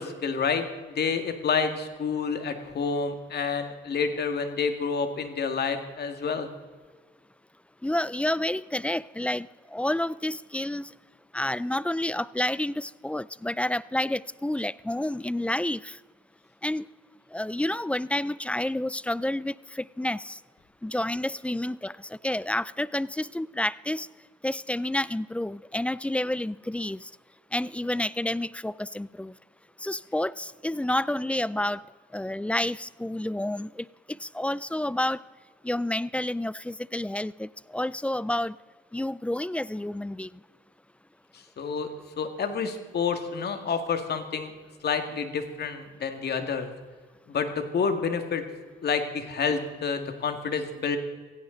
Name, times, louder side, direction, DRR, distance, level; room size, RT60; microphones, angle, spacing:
voice 1, 0.0-6.5 41.3-41.9 42.2-44.5 44.8-46.7 47.3-48.4 48.8-51.0, left 5 dB, 55° left, 7 dB, 2.1 m, -29 dB
voice 2, 7.8-10.9 11.3-16.0 16.6-16.9 17.3-20.4 20.8-24.1 24.4-27.1 27.5-29.3 29.8-31.9 32.1-35.2 35.6-38.6 38.9-40.3, left 1 dB, 5° left, 20 dB, 0.4 m, -29 dB
16.5 x 16.5 x 3.9 m, 1.5 s
cardioid pair, 90°, 20 cm